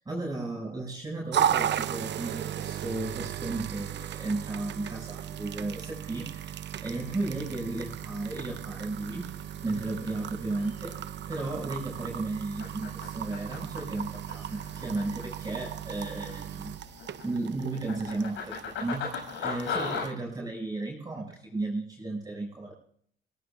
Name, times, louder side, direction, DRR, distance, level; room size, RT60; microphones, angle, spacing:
voice 1, 0.1-9.3 9.6-16.9 17.2-19.1 19.4-22.7, right 2 dB, 20° right, -3 dB, 7.0 m, -34 dB
sound 1, 1.3-20.1, right 10 dB, 60° right, 0.8 m, -36 dB
sound 2, 6.8-20.1, left 5 dB, 80° left, 7.4 m, -41 dB
24.0 x 18.0 x 2.6 m, 0.63 s
cardioid pair, 90°, 20 cm